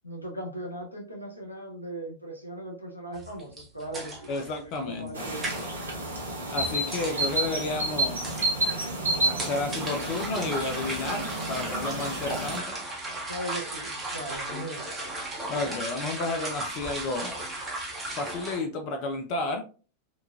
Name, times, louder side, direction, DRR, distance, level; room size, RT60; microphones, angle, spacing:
voice 1, 0.0-5.7 13.3-14.9, right 1 dB, 90° left, 0 dB, 0.7 m, -39 dB
sound 1, 3.1-18.6, right 2 dB, 15° right, 0.8 m, -37 dB
voice 2, 4.3-5.3 6.5-8.4 9.2-12.8 15.5-17.5 18.2-19.6, left 3 dB, 45° left, 6 dB, 0.3 m, -32 dB
sound 2, 5.1-12.6, right 1 dB, 75° right, 0.8 m, -30 dB
2.9 x 2.2 x 2.2 m, 0.36 s
figure-of-eight pair, 90°, 0 cm